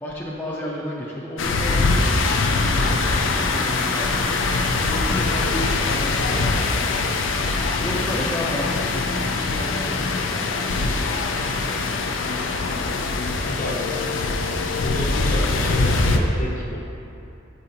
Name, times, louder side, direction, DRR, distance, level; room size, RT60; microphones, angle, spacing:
voice 1, 0.0-7.0 7.8-11.2, equal, 10° left, -5 dB, 0.4 m, -32 dB
sound 1, 1.4-16.2, left 3 dB, 90° left, 0.4 m, -23 dB
voice 2, 13.4-14.5 14.8-16.8, left 1 dB, 45° left, -2 dB, 0.7 m, -30 dB
6.6 x 5.1 x 2.8 m, 2.7 s
head